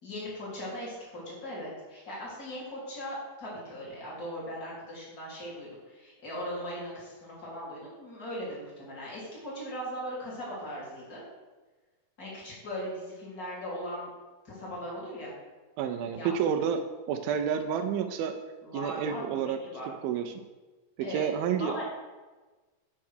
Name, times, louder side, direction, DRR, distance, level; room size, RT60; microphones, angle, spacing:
voice 1, 0.0-11.2 12.2-14.1 14.4-15.3 16.1-16.3 18.6-19.2 19.6-19.9 21.0-21.3 21.6-21.8, equal, 25° left, -6 dB, 3.2 m, -39 dB
voice 2, 15.8-16.8 17.1-18.3 18.7-19.6 20.0-20.4 21.1-21.7, right 8 dB, 85° right, 5 dB, 2.4 m, -29 dB
9.6 x 4.5 x 6.4 m, 1.3 s
omnidirectional pair, 4.1 m